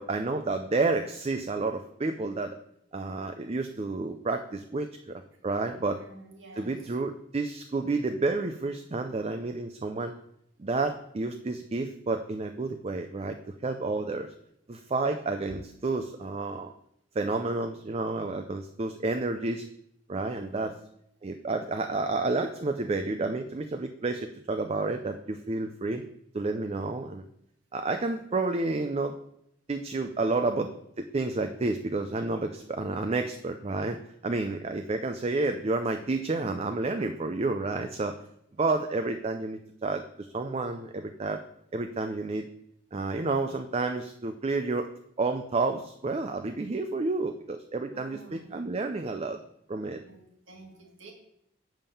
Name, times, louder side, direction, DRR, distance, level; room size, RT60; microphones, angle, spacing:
voice 1, 0.0-2.6 2.9-6.0 6.6-10.1 10.6-13.4 13.6-14.3 14.7-16.7 17.2-19.7 20.1-20.7 21.2-26.0 26.3-27.2 27.7-29.2 29.7-34.0 34.2-38.1 38.6-40.0 40.3-41.4 41.7-42.5 42.9-44.9 45.2-49.4 49.7-50.0, right 3 dB, 30° right, 7 dB, 0.5 m, -30 dB
voice 2, 5.9-6.9 20.4-20.7 21.6-22.2 47.9-48.6 50.0-51.1, right 2 dB, 70° right, 2 dB, 1.7 m, -50 dB
7.2 x 5.5 x 6.9 m, 0.75 s
head